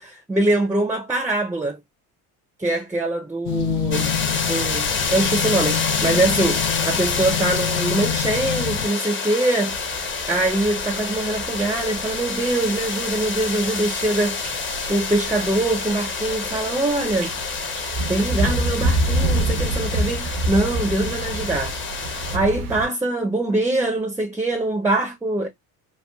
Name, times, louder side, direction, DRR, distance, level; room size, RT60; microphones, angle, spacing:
voice 1, 0.0-1.8 2.6-4.1 4.5-9.8 10.3-14.4 14.9-17.3 18.1-21.7 22.0-25.5, right 2 dB, 5° right, 0.5 m, -23 dB
sound 1, 3.4-8.9, left 8 dB, 75° left, 0.6 m, -27 dB
sound 2, 3.9-22.4, left 5 dB, 30° left, 0.7 m, -27 dB
sound 3, 9.7-22.9, right 1 dB, 90° right, 0.7 m, -28 dB
3.0 x 2.3 x 2.2 m
supercardioid pair, 85°, 43 cm